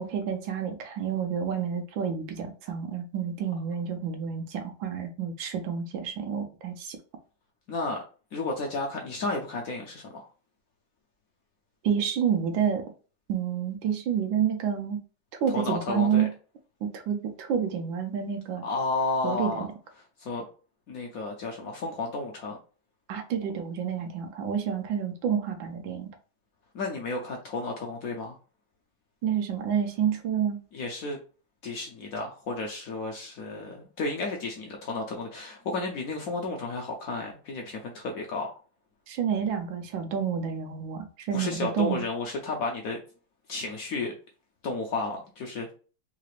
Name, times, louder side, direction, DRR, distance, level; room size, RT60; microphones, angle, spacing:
voice 1, 0.0-7.0 11.8-12.8 13.3-15.0 15.4-16.3 16.8-18.6 19.2-19.7 23.1-26.1 29.2-30.6 39.1-42.0, right 7 dB, 90° right, 5 dB, 1.5 m, -29 dB
voice 2, 7.7-8.0 8.3-10.2 15.5-16.3 18.6-19.7 20.2-20.5 20.9-22.6 26.7-28.4 30.7-31.2 31.6-38.5 41.3-43.0 43.5-44.1 44.6-45.7, left 3 dB, 70° left, 1 dB, 0.8 m, -32 dB
3.8 x 2.4 x 3.1 m, 0.37 s
omnidirectional pair, 2.0 m